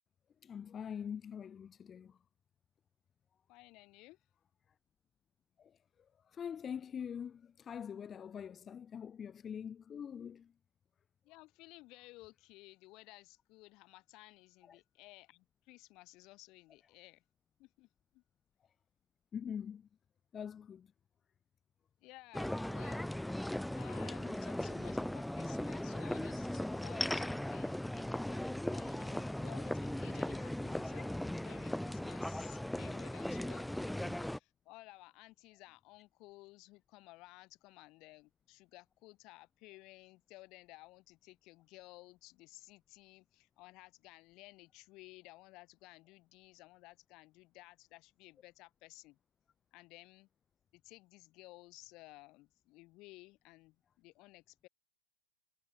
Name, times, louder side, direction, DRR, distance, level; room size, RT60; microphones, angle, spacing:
voice 1, 0.4-2.1 5.6-5.7 6.3-10.5 14.7-14.8 19.3-19.8 20.3-20.9 27.4-27.5, left 8 dB, 20° left, 1.0 m, -44 dB
voice 2, 3.5-4.2 11.2-17.2 17.6-18.2 22.0-23.1 23.7-49.2 49.7-50.3 50.7-54.7, left 21 dB, 40° left, 4.1 m, -57 dB
sound 1, 22.3-34.4, left 1 dB, ahead, 0.5 m, -38 dB
hypercardioid pair, 110°, 0 cm